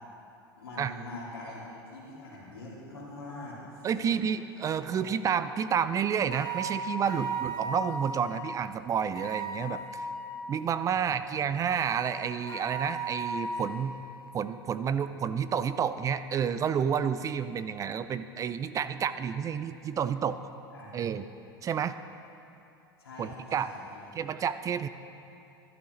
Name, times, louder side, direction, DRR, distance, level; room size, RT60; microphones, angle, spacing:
voice 1, 0.6-4.2 4.8-5.0 10.9-11.6 20.7-21.0 23.0-24.1, left 2 dB, 85° left, -6 dB, 2.7 m, -44 dB
voice 2, 3.8-10.1 10.5-14.0 14.3-20.5 20.9-21.3 21.6-22.0 23.2-23.7 24.2-24.9, right 7 dB, 25° right, 12 dB, 0.4 m, -30 dB
sound 1, 6.3-8.4 9.1-10.4 11.7-13.9, right 3 dB, 30° left, 2.2 m, -36 dB
12.0 x 11.5 x 3.2 m, 2.7 s
hypercardioid pair, 85°, 12 cm